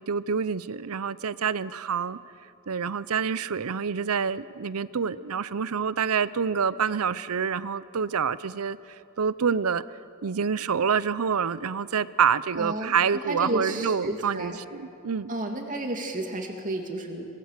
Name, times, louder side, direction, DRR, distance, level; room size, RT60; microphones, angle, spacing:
voice 1, 0.0-2.2 2.7-8.8 9.2-9.8 10.2-15.3, right 6 dB, 75° right, 17 dB, 0.6 m, -27 dB
voice 2, 12.6-14.6 15.3-17.3, right 1 dB, 35° right, 2 dB, 2.6 m, -32 dB
23.5 x 21.5 x 6.7 m, 2.6 s
head